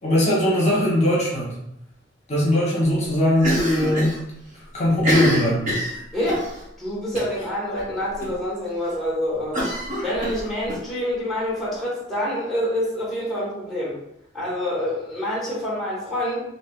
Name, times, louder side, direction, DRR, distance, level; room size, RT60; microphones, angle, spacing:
voice 1, 0.0-1.6 2.3-4.2 4.7-5.7, left 1 dB, 35° left, -6 dB, 0.9 m, -20 dB
Cough, 3.4-4.2 4.5-4.6 4.9-6.5 7.2-7.5 7.8-7.9 8.2-8.3 9.5-10.8, equal, 45° right, 0.9 m, -25 dB
voice 2, 6.1-14.0 14.3-16.4, left 1 dB, ahead, -8 dB, 1.0 m, -27 dB
3.3 x 2.6 x 2.3 m, 0.79 s
head